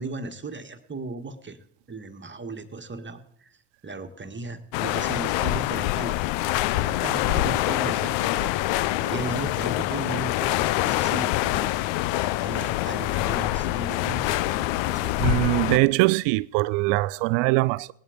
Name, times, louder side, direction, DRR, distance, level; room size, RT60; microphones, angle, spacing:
voice 1, 0.0-1.6 1.9-3.6 3.8-6.2 6.7-12.1 12.4-15.2, right 3 dB, 25° right, 1.7 m, -36 dB
sound 1, 4.7-15.8, left 16 dB, 70° left, 0.7 m, -25 dB
voice 2, 15.2-17.9, right 22 dB, 70° right, 0.5 m, -22 dB
18.0 x 11.0 x 5.1 m
supercardioid pair, 75°, 47 cm